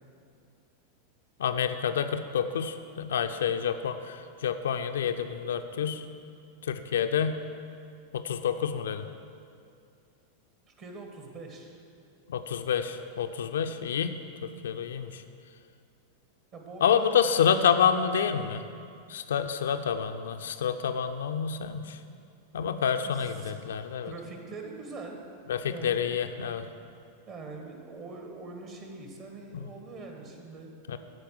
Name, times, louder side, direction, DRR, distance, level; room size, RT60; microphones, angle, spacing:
voice 1, 1.4-6.0 6.7-7.4 8.1-9.0 12.3-15.2 16.8-18.6 19.1-22.0 22.5-24.1 25.5-26.6 30.9-31.0, left 7 dB, 60° left, 7 dB, 0.5 m, -28 dB
voice 2, 10.7-11.8 16.5-18.4 22.9-23.7 24.0-25.2 25.7-26.3 27.3-30.7, right 3 dB, 35° right, 2 dB, 1.8 m, -43 dB
14.0 x 4.9 x 7.5 m, 2.4 s
figure-of-eight pair, 90°, 0 cm